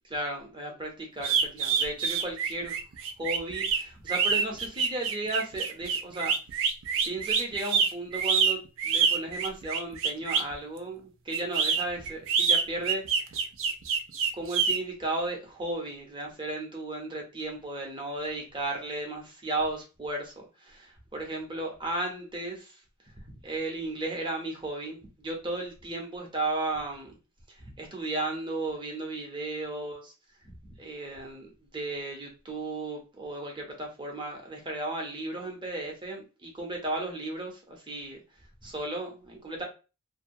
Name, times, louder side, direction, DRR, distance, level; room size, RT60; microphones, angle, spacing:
voice 1, 0.0-2.7 3.2-6.3 7.0-13.3 14.3-22.8 23.4-27.2 27.5-30.1 30.4-38.2 38.6-39.6, right 2 dB, 20° right, 0.8 m, -35 dB
sound 1, 1.2-10.5 11.3-14.8, right 6 dB, 60° right, 0.4 m, -26 dB
2.7 x 2.2 x 2.6 m
head